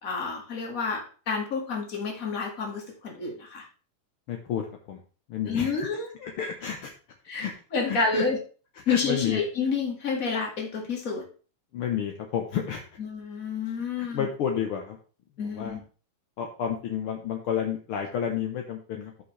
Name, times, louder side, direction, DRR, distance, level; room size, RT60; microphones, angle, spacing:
voice 1, 0.0-3.6 5.5-6.1 7.3-7.5 7.7-8.4 8.9-11.2 13.0-14.3 15.4-15.8, left 4 dB, 30° left, 1 dB, 1.9 m, -29 dB
voice 2, 4.3-5.0 5.3-5.9 6.2-6.9 7.4-7.5 7.9-8.2 8.9-9.4 11.7-12.8 14.0-15.0 15.4-15.8 16.4-19.1, left 8 dB, 65° left, 2 dB, 1.3 m, -30 dB
13.5 x 5.5 x 3.3 m, 0.38 s
omnidirectional pair, 3.7 m